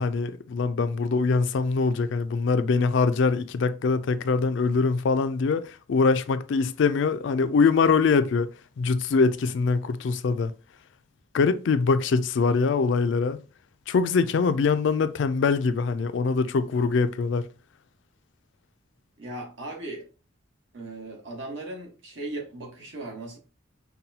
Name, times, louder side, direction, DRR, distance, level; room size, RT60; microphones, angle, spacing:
voice 1, 0.0-8.5 8.8-10.5 11.3-13.4 13.9-17.5, left 4 dB, 65° left, 0.3 m, -23 dB
voice 2, 19.2-20.1 20.7-23.4, right 2 dB, 70° right, 1.4 m, -37 dB
5.4 x 2.2 x 2.8 m
head